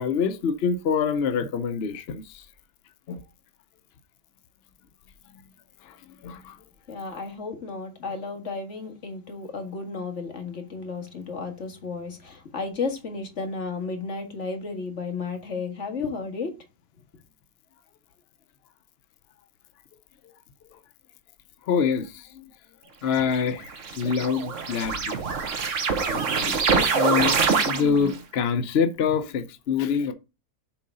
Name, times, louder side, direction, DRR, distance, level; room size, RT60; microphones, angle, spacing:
voice 1, 0.0-2.5 3.1-3.2 5.8-6.0 6.2-6.6 20.7-20.8 21.6-22.4 23.0-25.5 25.9-30.1, left 6 dB, 70° left, 0.6 m, -26 dB
voice 2, 6.9-16.5, left 4 dB, 40° left, 1.8 m, -33 dB
sound 1, 23.2-28.2, right 5 dB, 50° right, 1.2 m, -25 dB
7.5 x 3.8 x 5.3 m
omnidirectional pair, 1.9 m